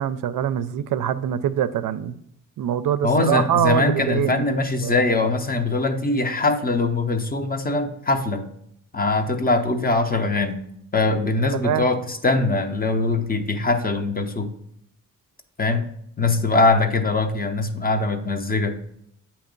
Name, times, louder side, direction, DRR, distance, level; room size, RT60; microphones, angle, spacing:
voice 1, 0.0-2.2 2.6-4.4 4.8-5.0 11.5-11.9, right 10 dB, 70° right, 12 dB, 0.5 m, -24 dB
voice 2, 3.0-8.4 8.9-10.6 10.9-14.5 15.6-15.9 16.2-18.8, left 3 dB, 25° left, 7 dB, 0.7 m, -22 dB
8.4 x 3.0 x 5.2 m, 0.72 s
cardioid pair, 95°, 34 cm